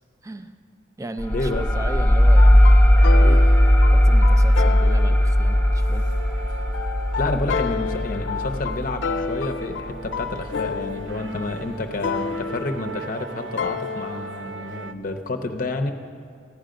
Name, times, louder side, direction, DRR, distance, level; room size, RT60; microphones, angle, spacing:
voice 1, 0.2-0.5 1.0-3.4 3.9-6.1, right 2 dB, 15° right, 8 dB, 0.5 m, -36 dB
sound 1, 1.2-10.4, equal, 10° left, 0.8 m, -17 dB
voice 2, 1.3-1.7 7.2-15.9, left 2 dB, 45° left, 5 dB, 0.7 m, -29 dB
sound 2, 2.4-14.2, left 6 dB, 85° left, 0.5 m, -31 dB
sound 3, 3.0-14.9, right 5 dB, 80° right, 0.5 m, -40 dB
15.0 x 10.5 x 5.1 m, 2.2 s
head